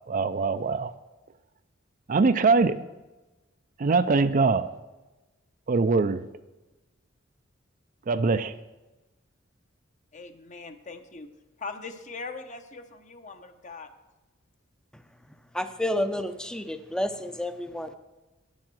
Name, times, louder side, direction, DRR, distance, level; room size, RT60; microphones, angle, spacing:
voice 1, 0.1-0.9 2.1-2.8 3.8-4.7 5.7-6.2 8.1-8.6, right 4 dB, 40° right, 12 dB, 0.4 m, -22 dB
voice 2, 10.1-11.3 11.6-13.9, left 4 dB, 40° left, 8 dB, 0.8 m, -41 dB
voice 3, 15.5-17.9, left 1 dB, 5° left, 9 dB, 0.6 m, -30 dB
9.7 x 7.2 x 7.6 m, 1.1 s
head